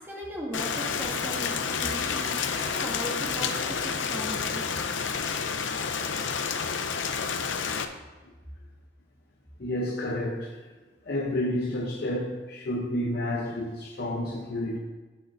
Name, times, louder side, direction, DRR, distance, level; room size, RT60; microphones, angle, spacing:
voice 1, 0.0-4.6, right 1 dB, 10° right, 2.4 m, -38 dB
Rain, 0.5-7.9, left 6 dB, 90° left, 0.7 m, -29 dB
voice 2, 9.6-10.6 11.1-14.8, left 1 dB, 55° left, 0.8 m, -30 dB
15.5 x 6.5 x 2.6 m
head